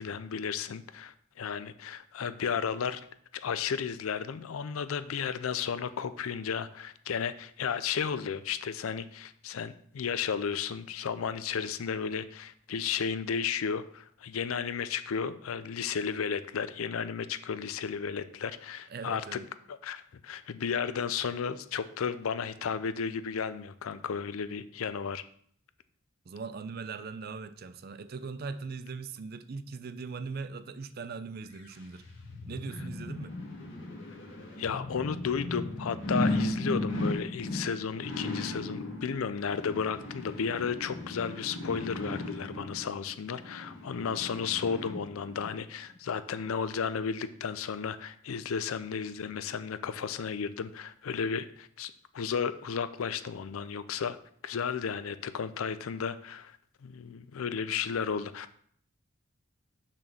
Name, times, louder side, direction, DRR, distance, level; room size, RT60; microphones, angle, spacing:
voice 1, 0.0-3.0 3.3-19.4 19.7-25.2 34.6-54.2 54.4-56.6 56.8-58.6, left 6 dB, 90° left, 0.5 m, -33 dB
voice 2, 18.9-19.5 26.3-32.0 32.5-33.4, right 4 dB, 50° right, 0.5 m, -40 dB
sound 1, 31.6-45.5 45.9-46.0, left 1 dB, 65° left, 1.7 m, -36 dB
6.3 x 4.3 x 6.0 m
head